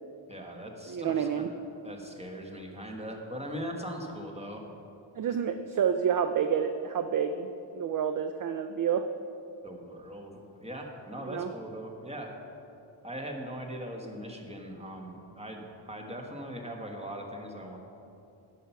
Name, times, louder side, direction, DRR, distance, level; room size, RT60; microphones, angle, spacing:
voice 1, 0.3-1.4 1.8-4.7 9.6-12.3 13.0-17.8, equal, 15° right, 2 dB, 1.2 m, -40 dB
voice 2, 0.9-1.5 5.2-7.5 7.7-9.1 11.3-11.5, right 7 dB, 45° right, 8 dB, 0.4 m, -28 dB
12.0 x 5.7 x 5.7 m, 2.8 s
wide cardioid pair, 115°, 49 cm